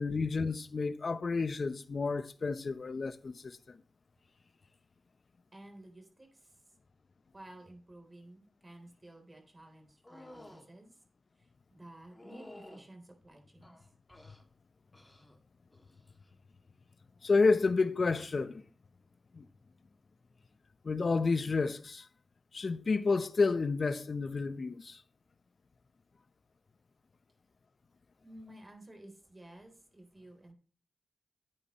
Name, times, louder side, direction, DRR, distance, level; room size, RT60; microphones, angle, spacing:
voice 1, 0.0-3.8 17.2-18.6 19.3-19.4 20.8-22.0 22.5-25.0, left 4 dB, 55° left, 0.8 m, -30 dB
voice 2, 5.5-6.5 7.3-10.9 11.4-11.5 11.7-13.8 28.2-30.5, right 1 dB, 30° right, 3.7 m, -53 dB
sound 1, 10.0-10.7 12.1-12.9 13.6-14.4 14.9-15.4 15.7-16.2 17.7-17.9, left 1 dB, 20° left, 2.4 m, -53 dB
11.0 x 8.9 x 3.1 m
cardioid pair, 50°, 0 cm